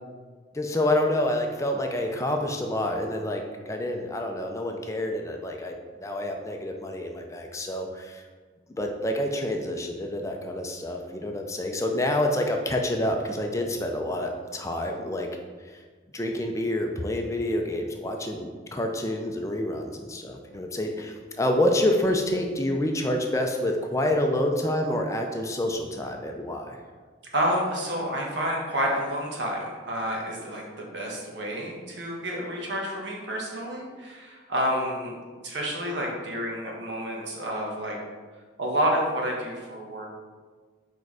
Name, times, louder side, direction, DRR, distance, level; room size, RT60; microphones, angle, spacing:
voice 1, 0.5-5.7 6.0-8.2 8.8-15.3 15.7-15.8 16.1-26.8, left 1 dB, 15° left, 3 dB, 0.5 m, -28 dB
voice 2, 27.3-35.1 35.4-38.0 38.6-40.1, equal, 65° right, -1 dB, 1.4 m, -29 dB
4.5 x 4.5 x 4.8 m, 1.5 s
head